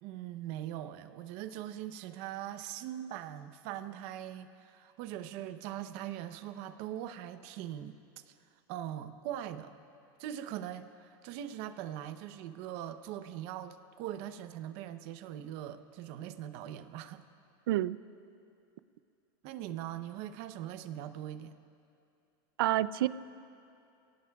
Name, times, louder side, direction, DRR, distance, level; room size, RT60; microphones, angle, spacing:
voice 1, 0.0-8.0 8.3-8.4 8.7-9.7 10.2-17.2 19.4-21.5, right 11 dB, 50° right, 10 dB, 0.8 m, -41 dB
voice 2, 17.7-18.0 22.6-23.1, right 14 dB, 90° right, 17 dB, 0.4 m, -28 dB
26.5 x 18.0 x 2.4 m, 2.6 s
supercardioid pair, 150°, 12 cm